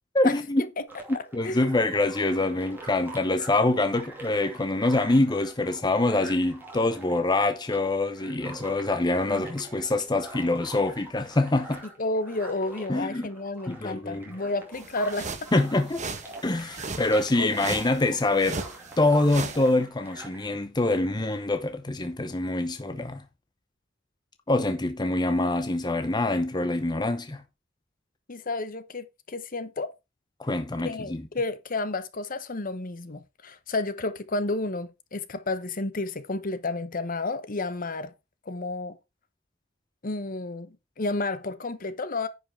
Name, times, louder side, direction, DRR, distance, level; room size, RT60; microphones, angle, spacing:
voice 1, 0.1-0.6 1.3-11.8 12.9-13.3 13.7-14.2 15.5-16.0 16.4-18.6 19.0-23.2 24.5-27.4 30.4-31.2, left 2 dB, 20° left, 0.8 m, -25 dB
sound 1, 0.9-20.5, right 2 dB, 10° right, 2.8 m, -45 dB
voice 2, 1.1-1.7 9.3-9.4 12.0-15.5 17.4-17.9 28.3-29.9 30.8-38.1 38.5-39.0 40.0-42.3, left 2 dB, 45° left, 1.0 m, -31 dB
sound 2, 14.7-19.7, right 4 dB, 40° right, 1.3 m, -38 dB
10.0 x 5.5 x 4.6 m
head